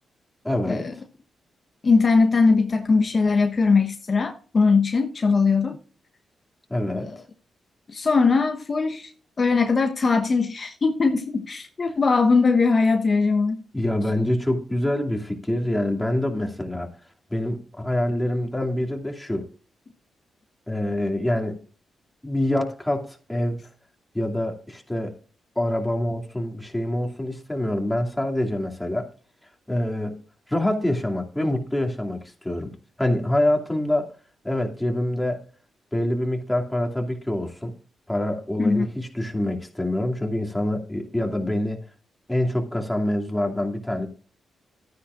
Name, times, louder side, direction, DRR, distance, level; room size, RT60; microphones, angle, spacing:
voice 1, 0.4-0.9 5.4-5.5 6.7-7.1 12.9-13.0 13.7-16.9 17.3-19.5 20.7-21.6 22.2-23.6 24.1-25.1 25.6-29.1 29.7-30.2 30.5-32.2 32.4-32.7 33.0-34.1 34.4-35.4 35.9-37.7 38.1-41.8 42.3-44.1, left 1 dB, 10° left, 2.5 m, -25 dB
voice 2, 1.8-5.8 6.9-7.2 7.9-9.1 9.4-13.6 38.6-38.9, left 4 dB, 45° left, 1.1 m, -20 dB
12.5 x 10.0 x 2.5 m
supercardioid pair, 45°, 0 cm